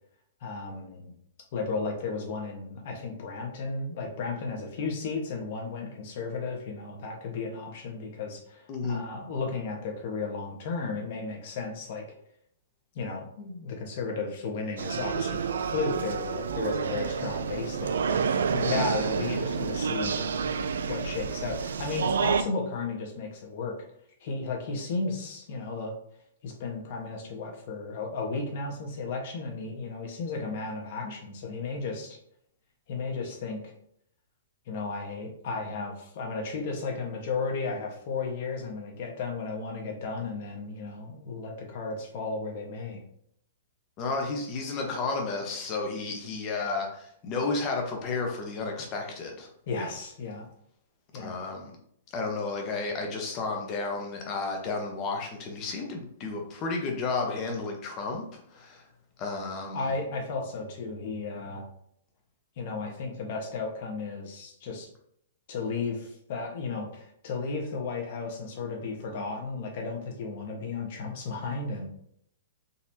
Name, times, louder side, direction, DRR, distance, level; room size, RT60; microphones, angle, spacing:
voice 1, 0.4-1.1 1.5-12.0 12.9-18.2 18.6-23.7 24.2-25.9 26.4-32.2 32.9-33.7 34.7-43.0 49.7-50.5 51.1-51.3 59.7-61.7 62.6-64.9 65.5-71.9, left 4 dB, 50° left, 1 dB, 1.1 m, -34 dB
voice 2, 8.7-9.0 18.5-18.9 44.0-49.5 51.2-51.7 52.1-58.3 58.5-58.8 59.2-59.9, left 3 dB, 30° left, 2 dB, 0.9 m, -32 dB
sound 1, 14.8-22.4, right 6 dB, 85° right, 0.3 m, -29 dB
3.9 x 2.9 x 2.7 m, 0.69 s
hypercardioid pair, 150°, 0 cm